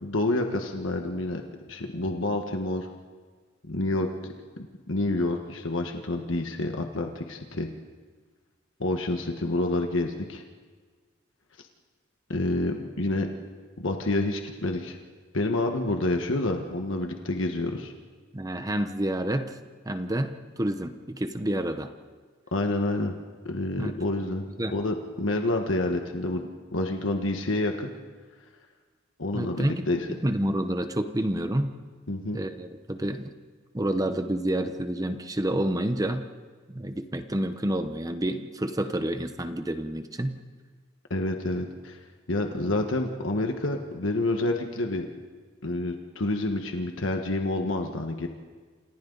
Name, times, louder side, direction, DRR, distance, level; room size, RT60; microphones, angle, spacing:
voice 1, 0.0-1.4 1.7-2.9 3.7-4.3 4.9-7.7 8.8-10.4 11.6-11.7 12.3-13.3 13.8-15.0 15.3-17.9 22.5-23.1 23.4-24.5 24.7-26.4 26.7-27.9 29.2-30.1 32.1-32.4 41.1-42.0 42.3-45.1 45.6-48.3, left 2 dB, 80° left, 4 dB, 1.5 m, -28 dB
voice 2, 18.3-19.5 19.9-21.9 23.8-24.0 24.6-24.8 29.3-29.9 30.2-31.7 32.3-33.3 33.7-36.3 36.7-40.4, right 1 dB, 20° right, 8 dB, 0.9 m, -29 dB
28.5 x 27.5 x 4.0 m, 1.5 s
head